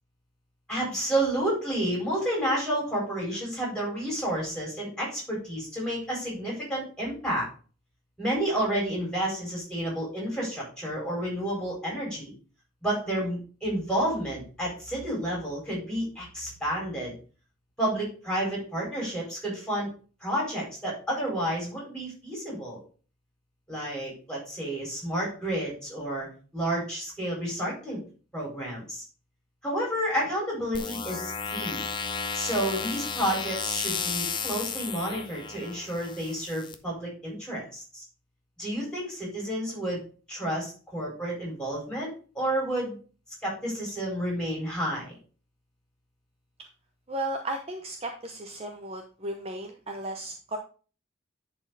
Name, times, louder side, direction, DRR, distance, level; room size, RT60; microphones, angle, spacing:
voice 1, 0.7-7.5 8.2-12.3 12.8-17.1 17.8-19.9 20.2-22.8 23.7-26.3 26.5-28.0 28.3-29.0 29.6-31.9 32.3-38.0 38.6-40.0 40.3-42.1 42.3-43.0 43.4-45.2, right 1 dB, 5° left, -4 dB, 4.6 m, -30 dB
sound 1, 30.7-36.7, left 5 dB, 25° left, 0.6 m, -33 dB
voice 2, 47.1-50.6, right 1 dB, 30° right, 4 dB, 0.7 m, -35 dB
10.5 x 4.3 x 3.9 m, 0.38 s
head